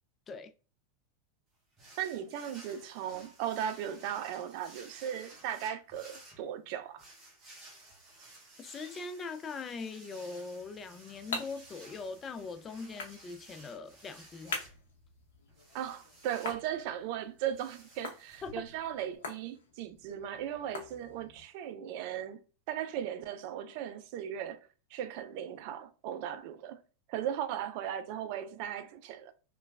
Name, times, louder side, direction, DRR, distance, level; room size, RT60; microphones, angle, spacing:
sound 1, 1.8-19.2, right 2 dB, 25° right, 1.2 m, -56 dB
voice 1, 2.0-7.1 15.7-22.4 22.7-26.8 27.1-29.3, right 10 dB, 60° right, 0.4 m, -37 dB
voice 2, 8.6-14.5 18.4-18.6, left 4 dB, 25° left, 0.3 m, -41 dB
sound 2, 10.6-21.5, left 4 dB, 80° left, 0.7 m, -46 dB
3.0 x 2.2 x 2.2 m
hypercardioid pair, 115°, 0 cm